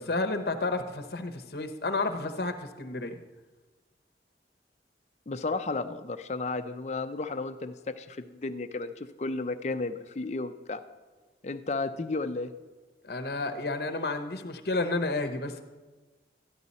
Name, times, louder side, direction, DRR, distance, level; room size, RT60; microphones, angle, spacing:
voice 1, 0.0-3.2 13.0-15.6, left 2 dB, 60° left, 8 dB, 0.9 m, -31 dB
voice 2, 5.3-10.8 11.4-12.5, left 3 dB, 40° left, 8 dB, 0.5 m, -33 dB
13.0 x 11.0 x 4.1 m, 1.3 s
head